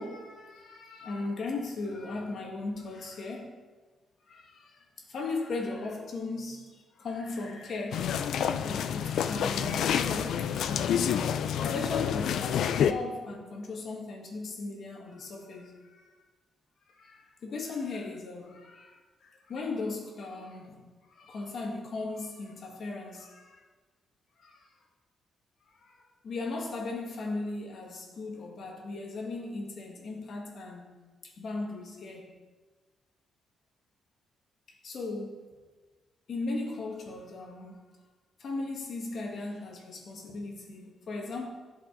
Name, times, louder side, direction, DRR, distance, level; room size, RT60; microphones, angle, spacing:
voice 1, 0.0-3.6 4.3-10.9 11.6-16.0 16.9-20.8 21.1-23.6 24.4-24.6 25.8-26.0 26.2-30.9 31.4-32.3 34.8-35.4 36.3-37.8 38.4-41.5, left 3 dB, 55° left, 1.7 m, -37 dB
sound 1, 7.9-12.9, left 8 dB, 75° left, 0.4 m, -28 dB
15.0 x 5.1 x 3.9 m
cardioid pair, 140°, 0 cm